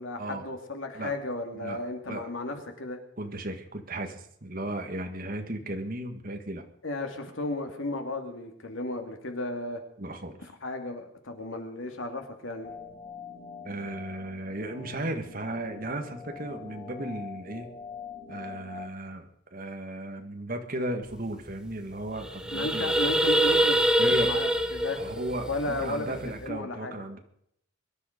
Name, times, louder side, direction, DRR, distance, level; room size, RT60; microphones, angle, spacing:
voice 1, 0.0-3.0 6.8-9.8 10.6-12.7 22.5-25.0 25.4-26.1 26.4-27.0, left 2 dB, 80° left, 4 dB, 2.6 m, -34 dB
voice 2, 1.5-2.3 3.2-6.6 10.0-10.4 13.6-17.7 18.3-23.0 24.0-24.4 25.0-27.2, right 1 dB, 45° right, 5 dB, 1.8 m, -35 dB
sound 1, 12.6-18.9, left 6 dB, 40° left, 2.4 m, -44 dB
sound 2, 21.1-21.2 21.5-21.7 22.1-26.4, right 1 dB, 5° right, 1.0 m, -25 dB
23.0 x 11.0 x 5.2 m, 0.72 s
head